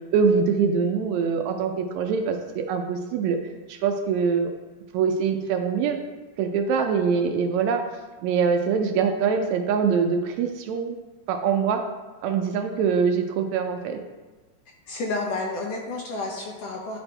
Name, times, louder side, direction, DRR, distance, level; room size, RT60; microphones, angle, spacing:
voice 1, 0.1-3.4 3.7-4.5 4.9-6.0 6.4-7.8 8.2-11.0 11.3-11.8 12.2-14.0, right 6 dB, 80° right, 5 dB, 1.8 m, -23 dB
voice 2, 14.9-17.0, left 2 dB, 70° left, 0 dB, 1.6 m, -30 dB
10.5 x 4.4 x 3.3 m, 1.3 s
omnidirectional pair, 3.4 m